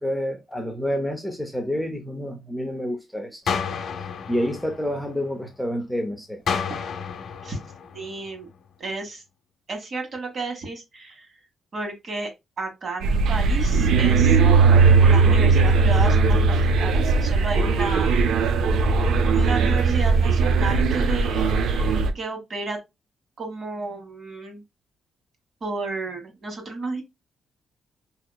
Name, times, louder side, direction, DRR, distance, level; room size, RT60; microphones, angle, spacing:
voice 1, 0.0-3.5 4.3-6.6, equal, ahead, 0.6 m, -28 dB
sound 1, 3.5-5.5 6.5-8.5, left 6 dB, 60° left, 0.8 m, -31 dB
voice 2, 7.9-8.5 8.8-9.2 9.7-11.4 11.7-12.3 12.6-14.4 15.0-18.3 18.5-18.6 19.3-22.8 23.4-24.6 25.6-27.0, right 3 dB, 45° right, 1.4 m, -32 dB
sound 2, 13.0-22.1, right 4 dB, 80° right, 0.4 m, -18 dB
4.6 x 2.8 x 2.2 m
cardioid pair, 130°, 0 cm